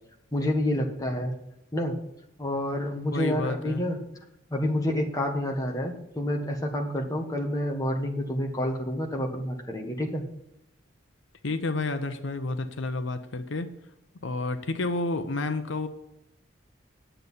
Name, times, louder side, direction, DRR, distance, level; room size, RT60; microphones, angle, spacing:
voice 1, 0.3-1.4 1.7-2.0 2.4-4.0 4.5-10.2, left 1 dB, 20° left, 2 dB, 1.3 m, -28 dB
voice 2, 3.1-3.8 11.4-13.7 14.2-15.9, left 2 dB, 70° left, 9 dB, 0.8 m, -30 dB
10.0 x 8.0 x 5.6 m, 0.81 s
head